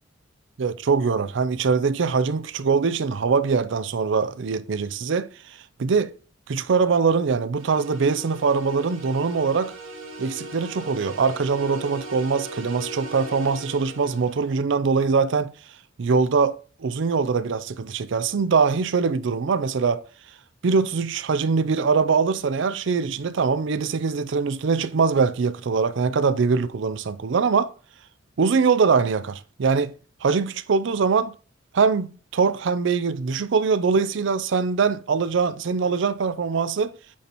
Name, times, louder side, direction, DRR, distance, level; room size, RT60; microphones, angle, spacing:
voice 1, 0.6-6.1 6.5-9.8 10.2-15.5 16.0-20.0 20.6-27.7 28.4-29.9 30.2-31.3 31.7-36.9, right 5 dB, 65° right, 0.4 m, -22 dB
sound 1, 7.6-14.6, right 2 dB, 90° right, 1.3 m, -39 dB
8.4 x 3.0 x 4.1 m
head